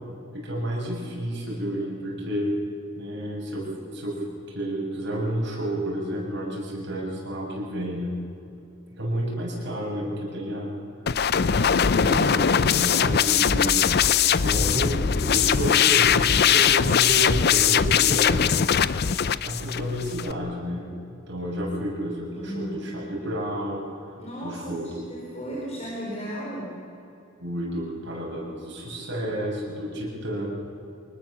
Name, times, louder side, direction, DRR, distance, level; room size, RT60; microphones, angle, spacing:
voice 1, 0.1-2.5 3.0-3.6 3.9-4.1 4.5-8.1 8.9-10.7 11.4-13.9 14.4-18.6 19.4-20.9 21.3-23.8 24.4-25.1 27.4-30.5, equal, 60° right, -3 dB, 7.2 m, -30 dB
sound 1, 11.1-20.3, left 8 dB, 55° left, 0.6 m, -21 dB
voice 2, 22.3-22.9 24.2-26.7, equal, 35° left, -4 dB, 4.3 m, -35 dB
24.5 x 20.0 x 7.4 m, 2.7 s
head